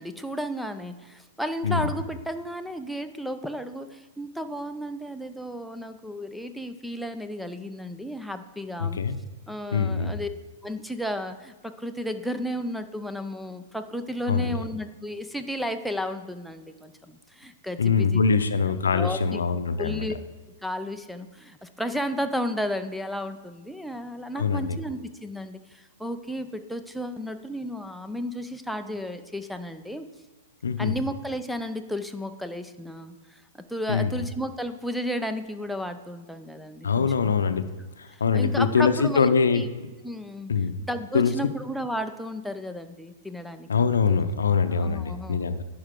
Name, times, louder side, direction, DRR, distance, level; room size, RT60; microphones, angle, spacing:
voice 1, 0.0-9.0 9.5-10.3 10.6-18.2 18.9-19.4 19.8-20.2 20.6-30.1 30.8-33.4 33.7-37.3 38.1-39.6 40.0-40.5 40.9-43.7 44.1-44.2 44.7-45.5, equal, ahead, 9 dB, 0.5 m, -33 dB
voice 2, 8.8-9.2 9.7-10.2 14.3-14.6 17.8-20.1 24.3-24.8 30.6-31.0 33.9-34.2 36.8-37.7 38.0-39.6 40.5-40.7 41.1-41.5 43.7-45.6, left 5 dB, 75° left, 10 dB, 0.6 m, -23 dB
10.5 x 4.7 x 3.7 m, 1.2 s
figure-of-eight pair, 110°, 0 cm